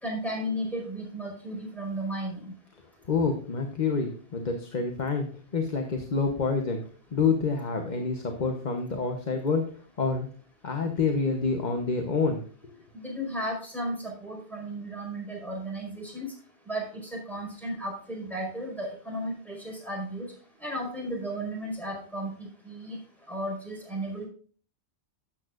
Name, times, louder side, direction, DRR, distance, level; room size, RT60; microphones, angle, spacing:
voice 1, 0.0-2.5 12.9-16.3 16.7-20.3 20.6-23.0 23.3-24.2, right 1 dB, ahead, -2 dB, 4.7 m, -34 dB
voice 2, 3.1-5.3 5.5-6.8 7.1-9.7 10.0-10.3 10.6-12.4, left 4 dB, 45° left, 4 dB, 1.1 m, -27 dB
12.5 x 8.9 x 2.5 m, 0.43 s
omnidirectional pair, 1.1 m